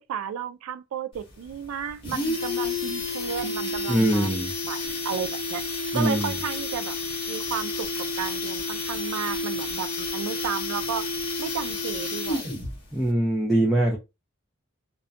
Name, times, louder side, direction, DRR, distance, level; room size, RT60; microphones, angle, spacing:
voice 1, 0.1-4.4 4.6-5.6 5.9-7.0 7.3-7.9 8.2-11.1 11.4-12.6, right 7 dB, 75° right, 0.3 m, -33 dB
sound 1, 1.1-1.2 1.5-1.6 1.9-12.7 13.0-13.1, left 2 dB, 25° left, 0.7 m, -30 dB
voice 2, 3.9-4.5 5.9-6.3 12.9-14.0, right 1 dB, ahead, 0.3 m, -22 dB
2.3 x 2.1 x 2.5 m
head